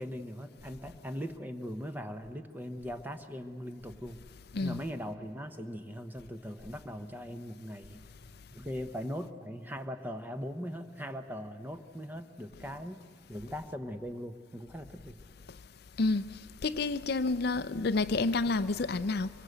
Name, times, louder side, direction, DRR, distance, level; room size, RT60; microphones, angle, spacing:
voice 1, 0.0-4.2 4.6-8.0 8.5-13.0 13.3-15.2, equal, 10° right, 1.0 m, -40 dB
voice 2, 16.6-19.3, left 3 dB, 55° left, 0.5 m, -29 dB
25.0 x 23.0 x 8.0 m
head